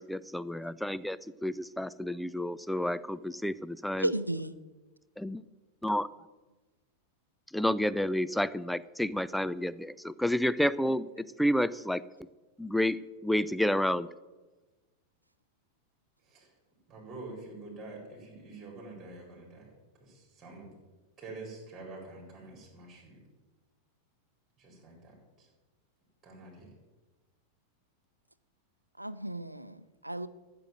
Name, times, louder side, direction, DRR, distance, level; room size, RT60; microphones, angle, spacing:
voice 1, 0.0-4.1 5.2-5.4 5.8-6.1 7.5-12.0 12.6-14.1, equal, ahead, 17 dB, 0.4 m, -30 dB
voice 2, 4.0-4.5 29.0-30.3, right 1 dB, 85° right, 14 dB, 0.6 m, -34 dB
voice 3, 16.9-19.7 20.0-20.7 21.2-23.2 24.6-25.5 26.2-26.7, right 2 dB, 20° right, -1 dB, 4.3 m, -47 dB
13.5 x 6.8 x 7.5 m, 1.2 s
figure-of-eight pair, 90°, 0 cm